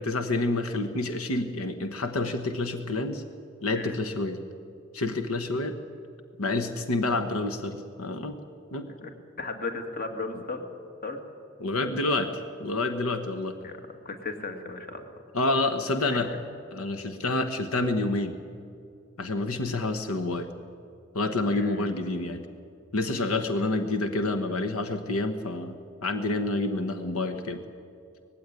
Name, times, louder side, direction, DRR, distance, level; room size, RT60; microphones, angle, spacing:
voice 1, 0.0-3.2 3.6-4.4 4.9-5.7 6.4-8.4 8.7-8.9 11.6-13.6 15.3-16.3 16.7-18.4 19.2-20.5 21.1-22.4 22.9-25.7 26.0-27.6, left 2 dB, 90° left, 8 dB, 1.2 m, -28 dB
voice 2, 9.4-10.7 11.0-11.2 13.6-13.7 14.1-15.0 16.1-16.4 21.5-21.9, left 3 dB, 45° left, 6 dB, 2.1 m, -35 dB
19.0 x 16.0 x 9.7 m, 2.5 s
head